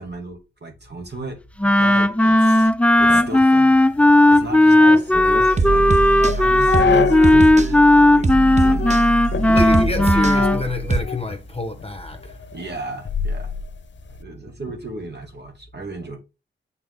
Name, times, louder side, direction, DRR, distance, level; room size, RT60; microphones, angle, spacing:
voice 1, 0.0-2.7 3.0-3.8 4.3-6.0 6.3-8.3 8.6-8.9 9.8-9.9 12.5-13.6 14.2-16.2, right 2 dB, 55° right, 2.2 m, -34 dB
Wind instrument woodwind instrument, 1.6-10.6, left 1 dB, 5° left, 0.5 m, -15 dB
sound 1, 3.1-7.5 7.9-8.0 8.6-9.0 9.3-11.4 11.8-14.2, left 6 dB, 60° left, 0.7 m, -28 dB
sound 2, 5.1-11.0, right 3 dB, 35° right, 0.8 m, -24 dB
voice 2, 9.5-12.5, left 2 dB, 25° left, 1.3 m, -27 dB
7.5 x 4.4 x 3.8 m
cardioid pair, 50°, 21 cm